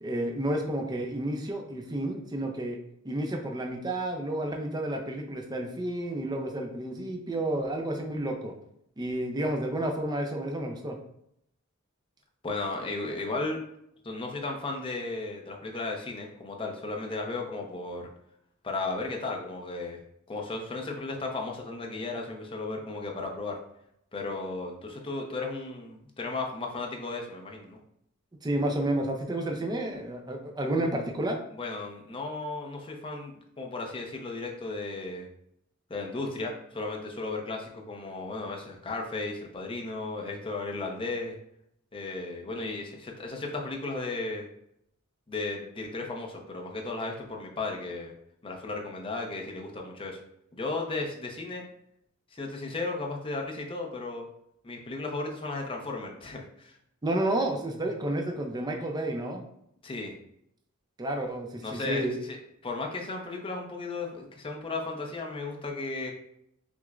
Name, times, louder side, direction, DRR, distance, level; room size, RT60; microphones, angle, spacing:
voice 1, 0.0-2.8 3.0-8.5 9.0-11.0 28.4-31.4 57.0-59.4 61.0-62.2, right 1 dB, 20° right, 2 dB, 0.5 m, -31 dB
voice 2, 12.4-13.6 14.0-18.1 18.6-20.0 20.3-23.6 24.1-27.8 31.5-35.3 35.9-41.4 41.9-44.5 45.3-48.1 48.4-50.2 50.5-51.7 52.3-54.2 54.6-56.8 59.8-60.2 61.6-62.4 62.6-66.1, left 3 dB, 25° left, 0 dB, 0.6 m, -35 dB
6.0 x 2.1 x 2.4 m, 0.75 s
head